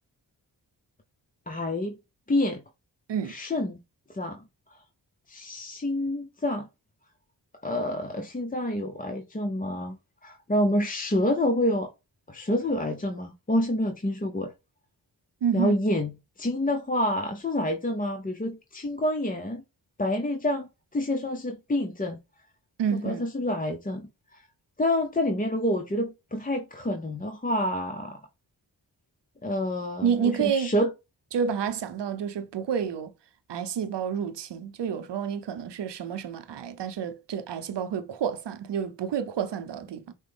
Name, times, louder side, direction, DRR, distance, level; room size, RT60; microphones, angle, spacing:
voice 1, 1.5-2.0 2.3-2.6 3.3-3.8 4.1-4.4 5.3-6.7 7.6-10.0 10.2-11.9 12.3-14.5 15.5-19.6 20.0-22.2 22.9-24.4 24.8-28.2 29.4-30.9, left 1 dB, 20° left, 0.7 m, -28 dB
voice 2, 15.4-15.8 22.8-23.3 30.0-30.7 31.3-33.1 33.5-40.1, right 7 dB, 70° right, 0.8 m, -29 dB
6.1 x 2.2 x 3.5 m
cardioid pair, 45°, 43 cm